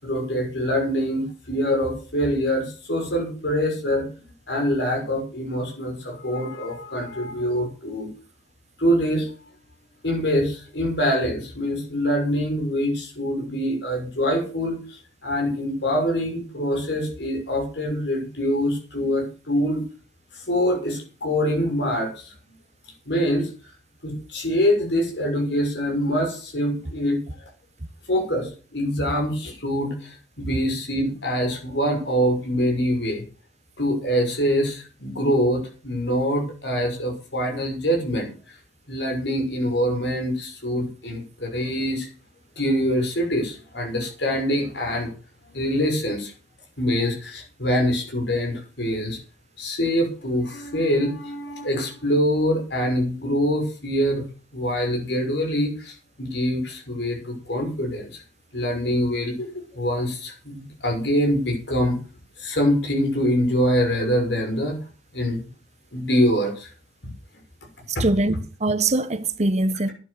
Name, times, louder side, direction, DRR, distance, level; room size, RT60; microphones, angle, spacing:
voice 1, 0.0-4.1 4.5-8.1 8.8-9.3 10.0-19.8 20.3-22.3 23.1-23.5 24.0-27.5 28.1-33.2 33.8-38.3 38.9-42.1 42.6-45.1 45.5-46.3 46.8-49.2 49.6-54.3 54.5-58.2 58.5-62.0 62.4-64.8 65.1-65.5 65.9-66.7 67.9-68.1, equal, 75° left, 6.3 m, -24 dB
voice 2, 68.0-69.9, right 2 dB, 40° right, 1.1 m, -22 dB
11.5 x 10.5 x 6.7 m
head